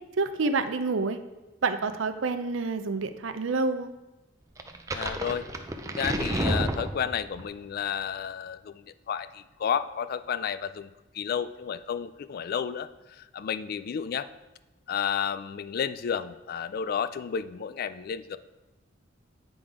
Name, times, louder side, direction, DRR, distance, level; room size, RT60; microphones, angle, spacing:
voice 1, 0.2-1.2 1.6-3.9, right 3 dB, 80° right, 10 dB, 0.5 m, -28 dB
sound 1, 4.6-7.5, right 1 dB, 15° right, 0.4 m, -30 dB
voice 2, 4.9-5.5 5.9-10.9 11.1-12.9 13.2-14.3 14.9-18.4, left 7 dB, 50° left, 13 dB, 0.3 m, -31 dB
8.8 x 3.9 x 4.9 m, 1.1 s
head